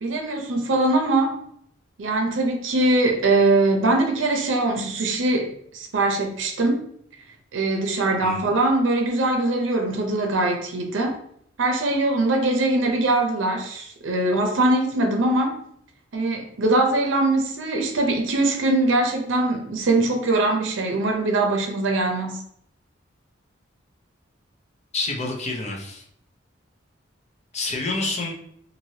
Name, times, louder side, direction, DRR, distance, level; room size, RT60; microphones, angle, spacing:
voice 1, 0.0-1.4 2.0-6.9 7.5-11.1 11.6-15.6 16.1-22.4, right 2 dB, 75° right, 0.6 m, -22 dB
voice 2, 24.9-26.0 27.5-28.3, left 3 dB, 35° left, 0.5 m, -28 dB
3.1 x 2.6 x 2.8 m
head